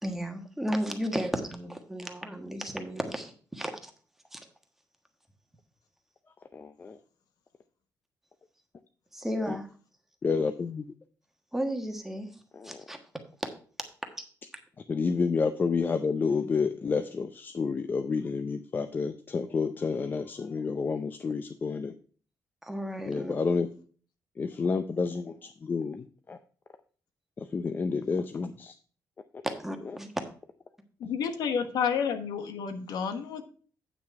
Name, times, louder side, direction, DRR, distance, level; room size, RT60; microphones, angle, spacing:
voice 1, 0.0-3.9 4.3-4.4 9.1-9.7 11.5-12.3 12.6-13.0 22.6-23.3 29.4-30.1, equal, 5° right, 5 dB, 1.3 m, -33 dB
voice 2, 6.5-7.0 9.5-9.6 10.2-10.9 12.5-12.8 14.9-21.9 23.1-23.7 24.4-26.4 27.4-28.7, left 5 dB, 30° left, 8 dB, 0.5 m, -30 dB
voice 3, 31.0-33.4, left 7 dB, 85° left, 7 dB, 1.3 m, -30 dB
9.1 x 6.1 x 4.6 m, 0.41 s
cardioid pair, 155°, 7 cm